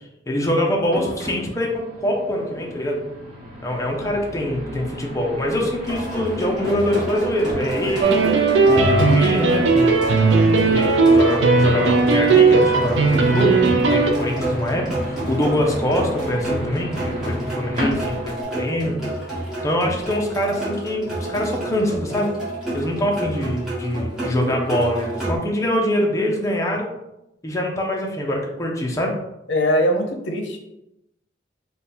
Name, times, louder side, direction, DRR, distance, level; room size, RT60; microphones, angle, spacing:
voice 1, 0.3-3.0 3.6-8.2 8.6-10.1 10.6-19.0 19.6-22.3 22.7-26.9 27.4-29.1, left 1 dB, 15° left, -1 dB, 0.6 m, -24 dB
sound 1, 0.9-18.4, equal, 40° right, 1.3 m, -33 dB
sound 2, 5.9-25.4, right 1 dB, 5° right, 1.4 m, -29 dB
sound 3, 8.0-14.1, right 4 dB, 80° right, 0.5 m, -16 dB
voice 2, 29.5-30.6, equal, 80° left, 3 dB, 0.6 m, -21 dB
3.4 x 2.3 x 4.2 m, 0.88 s
head